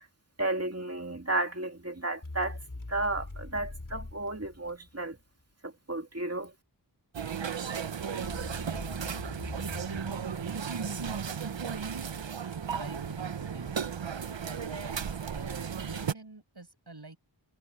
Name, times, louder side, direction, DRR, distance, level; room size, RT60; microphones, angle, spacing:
voice 1, 0.4-2.6 2.9-5.2 5.6-6.5, right 2 dB, 35° right, 2.6 m, -33 dB
sound 1, 2.2-5.2 8.2-11.7, left 2 dB, 45° left, 5.2 m, -43 dB
sound 2, 7.1-16.1, right 7 dB, 90° right, 0.9 m, -35 dB
voice 2, 10.5-11.2 12.8-13.7 15.3-17.2, right 2 dB, 65° right, 7.0 m, -45 dB
wide cardioid pair, 45°, 43 cm